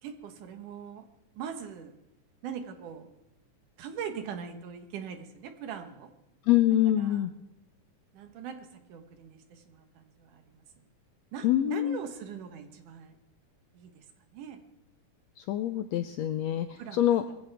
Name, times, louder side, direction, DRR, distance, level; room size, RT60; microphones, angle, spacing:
voice 1, 0.0-1.1 1.3-1.9 2.4-3.1 3.8-6.1 7.0-7.2 8.1-10.8 11.3-13.2 13.7-14.1 14.3-14.6 16.5-17.3, right 7 dB, 75° right, 7 dB, 2.7 m, -42 dB
voice 2, 6.5-7.3 11.4-12.0 15.4-17.2, left 12 dB, 80° left, 8 dB, 1.5 m, -25 dB
22.0 x 15.0 x 3.4 m, 0.83 s
omnidirectional pair, 3.6 m